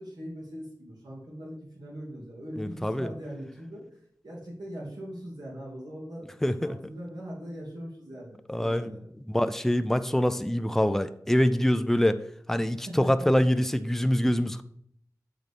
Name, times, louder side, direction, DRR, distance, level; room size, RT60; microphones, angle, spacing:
voice 1, 0.0-3.8 4.2-6.3 6.6-9.1 12.9-13.3, equal, 85° right, -6 dB, 2.7 m, -41 dB
voice 2, 2.6-3.1 6.4-6.8 8.5-8.9 9.3-12.2 12.5-14.6, equal, 5° left, 11 dB, 0.5 m, -25 dB
7.4 x 4.0 x 5.1 m, 0.68 s
wide cardioid pair, 65°, 7 cm